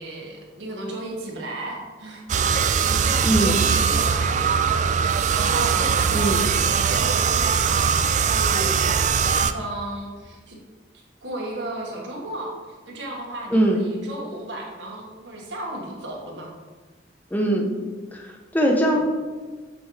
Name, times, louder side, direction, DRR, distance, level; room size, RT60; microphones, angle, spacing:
voice 1, 0.0-2.2 2.5-10.6 10.9-12.6 12.9-16.5 18.9-19.0, right 1 dB, 90° right, -2 dB, 1.7 m, -35 dB
sound 1, 2.3-9.5, right 6 dB, 40° right, 0.3 m, -21 dB
voice 2, 3.2-3.6 6.1-6.4 13.5-13.8 17.3-17.7 18.1-19.0, right 1 dB, 10° left, 0 dB, 0.9 m, -21 dB
8.5 x 5.3 x 3.3 m, 1.4 s
head